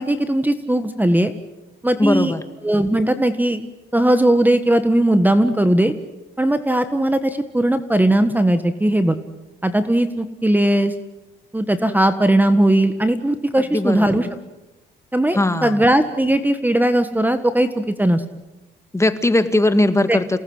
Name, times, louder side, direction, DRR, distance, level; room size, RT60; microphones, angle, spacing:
voice 1, 0.0-1.3 1.8-2.3 2.6-3.6 3.9-5.9 6.4-9.2 9.6-10.9 11.5-14.3 15.1-18.2 20.1-20.4, right 1 dB, 10° right, 10 dB, 1.6 m, -18 dB
voice 2, 2.0-2.4 13.7-14.3 15.3-15.8 18.9-20.4, left 1 dB, 15° left, 9 dB, 1.9 m, -19 dB
29.0 x 18.5 x 8.0 m, 1.0 s
cardioid pair, 90°, 20 cm